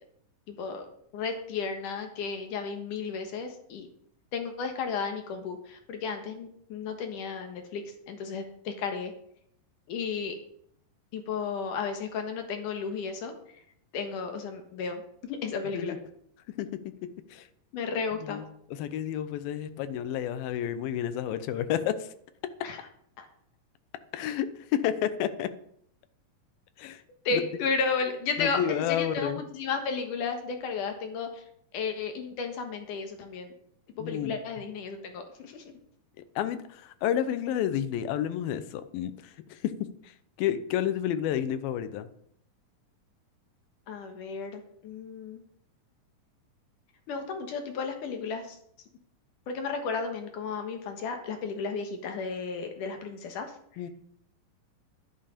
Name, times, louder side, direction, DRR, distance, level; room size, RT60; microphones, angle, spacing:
voice 1, 0.5-0.9 1.1-3.9 4.3-9.1 9.9-10.3 11.1-13.6 13.9-15.9 17.7-18.4 22.6-22.8 23.2-23.3 27.3-31.4 31.7-33.5 34.0-35.6 43.9-45.4 47.1-48.6 49.5-53.5, left 5 dB, 65° left, 5 dB, 2.8 m, -33 dB
voice 2, 18.7-22.1 24.1-25.5 26.8-27.0 27.3-27.4 28.4-29.4 34.0-34.4 36.4-42.1 53.8-53.9, left 10 dB, 85° left, 12 dB, 2.7 m, -30 dB
11.0 x 11.0 x 5.1 m, 0.68 s
omnidirectional pair, 4.1 m